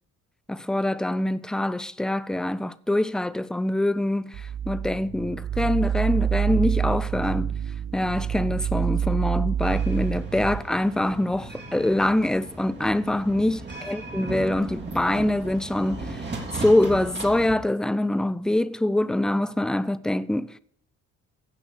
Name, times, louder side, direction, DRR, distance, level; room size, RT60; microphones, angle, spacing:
voice 1, 0.5-7.5 7.9-16.3 16.5-20.6, left 1 dB, ahead, 0.4 m, -24 dB
sound 1, 4.3-10.6, right 8 dB, 70° right, 0.9 m, -27 dB
sound 2, 9.6-17.5, right 2 dB, 35° right, 3.2 m, -37 dB
16.0 x 5.9 x 6.5 m
cardioid pair, 90°, 30 cm